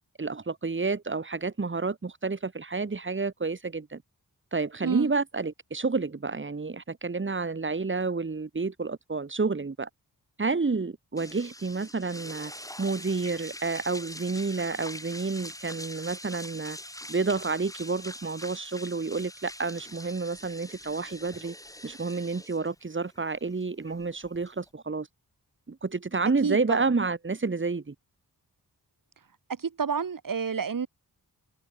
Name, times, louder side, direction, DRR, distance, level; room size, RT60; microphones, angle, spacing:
voice 1, 0.2-4.0 4.5-9.9 10.4-12.5 12.8-16.8 17.1-21.5 21.8-25.1 25.7-27.9, right 4 dB, 30° right, 1.6 m, -30 dB
sound 1, 11.2-24.7, left 1 dB, 10° left, 7.8 m, -44 dB
voice 2, 26.4-26.9 29.5-30.9, right 6 dB, 55° right, 1.7 m, -29 dB
wide cardioid pair, 95°, 38 cm